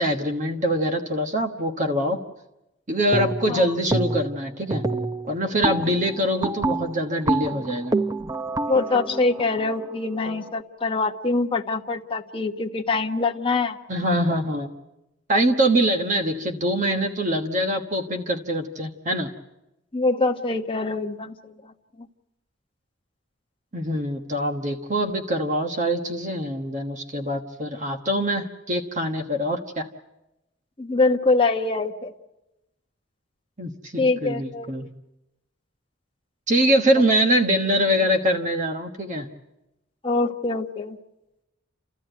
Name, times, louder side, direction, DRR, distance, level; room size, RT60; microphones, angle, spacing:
voice 1, 0.0-2.2 2.9-4.8 5.3-8.0 13.9-14.7 15.3-19.3 23.7-29.9 33.6-34.9 36.5-39.3, equal, 40° right, 3 dB, 1.2 m, -24 dB
sound 1, 3.1-3.6 3.9-4.4 4.7-10.5, right 2 dB, 20° right, 0.8 m, -27 dB
voice 2, 8.7-13.8 19.9-21.7 30.8-32.1 34.0-34.7 40.0-41.0, left 3 dB, 25° left, 3 dB, 1.0 m, -24 dB
30.0 x 14.0 x 9.2 m, 0.97 s
head